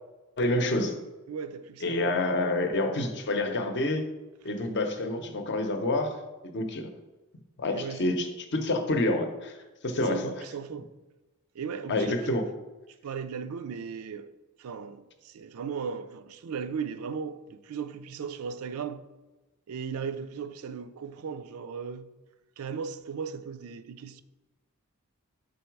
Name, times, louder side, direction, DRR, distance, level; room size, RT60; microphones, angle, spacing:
voice 1, 0.4-1.0 1.8-4.0 4.4-6.2 6.4-6.9 7.6-9.5 9.8-10.3 11.9-12.4, left 2 dB, 55° left, 0.7 m, -28 dB
voice 2, 1.3-2.2 7.7-8.1 9.9-10.9 11.5-12.5 13.0-14.3 14.6-19.0 19.7-22.1 22.6-24.2, right 6 dB, 80° right, 0.4 m, -37 dB
5.4 x 3.8 x 4.6 m
head